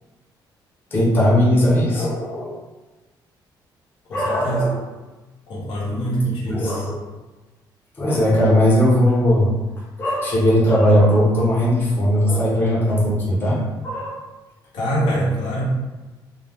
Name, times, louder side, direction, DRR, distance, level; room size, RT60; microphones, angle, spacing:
voice 1, 0.9-2.6 4.1-4.8 6.4-7.0 8.0-9.5 10.0-14.1 15.0-15.2, equal, 25° left, -6 dB, 0.6 m, -18 dB
voice 2, 4.1-4.7 5.5-7.0 14.7-15.6, right 1 dB, 85° left, -6 dB, 0.9 m, -24 dB
2.4 x 2.1 x 3.2 m, 1.2 s
cardioid pair, 150°, 8 cm